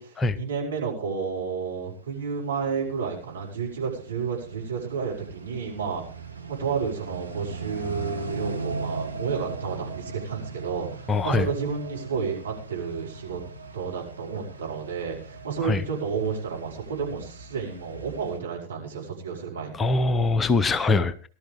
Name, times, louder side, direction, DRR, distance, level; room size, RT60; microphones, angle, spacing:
voice 1, 0.0-6.0 6.5-13.4 13.7-19.8, right 6 dB, 70° right, -3 dB, 5.3 m, -31 dB
sound 1, 1.8-18.4, right 3 dB, 85° right, 1.5 m, -39 dB
voice 2, 11.1-11.5 15.6-15.8 19.7-21.3, left 3 dB, 15° left, 13 dB, 0.7 m, -23 dB
19.0 x 12.0 x 3.4 m, 0.38 s
figure-of-eight pair, 90°, 0 cm